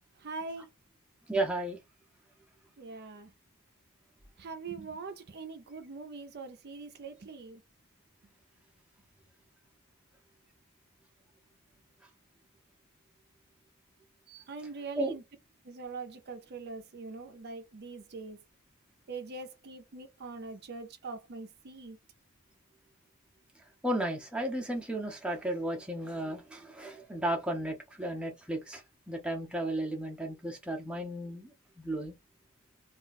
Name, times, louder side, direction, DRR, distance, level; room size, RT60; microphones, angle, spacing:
voice 1, 0.2-0.7 2.8-3.3 4.4-7.6 14.5-15.2 15.6-18.4 19.1-22.0, right 4 dB, 45° right, 0.5 m, -43 dB
voice 2, 1.3-1.8 14.3-14.4 15.0-15.2 23.8-28.8 29.1-31.5 31.8-32.1, right 1 dB, 5° right, 0.6 m, -34 dB
2.4 x 2.2 x 3.9 m
head